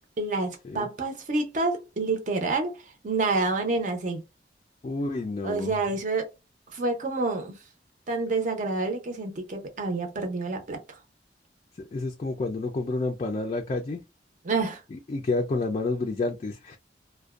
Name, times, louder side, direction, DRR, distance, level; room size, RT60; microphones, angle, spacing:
voice 1, 0.2-2.8 3.0-4.2 5.4-6.3 6.7-7.6 8.1-10.8 14.4-14.8, right 3 dB, 45° right, 0.6 m, -28 dB
voice 2, 4.8-5.8 11.8-14.0 14.9-16.8, left 3 dB, 35° left, 0.3 m, -29 dB
2.5 x 2.1 x 2.3 m
head